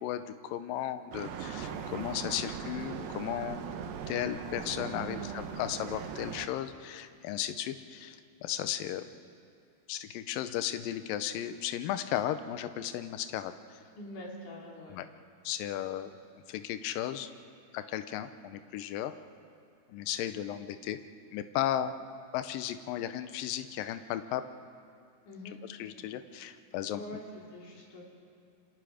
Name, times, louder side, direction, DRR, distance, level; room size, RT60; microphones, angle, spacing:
voice 1, 0.0-3.6 4.1-9.1 9.9-13.5 14.9-15.1 15.4-17.3 17.7-19.1 19.9-21.0 21.3-22.0 22.3-24.4 25.8-27.2, left 11 dB, 75° left, 10 dB, 2.4 m, -35 dB
sound 1, 1.1-6.5, right 7 dB, 75° right, 2.8 m, -40 dB
voice 2, 4.8-5.3 13.9-15.0 25.3-25.6 26.9-28.0, equal, 55° left, -3 dB, 5.0 m, -44 dB
28.0 x 26.0 x 5.1 m, 2.4 s
omnidirectional pair, 4.3 m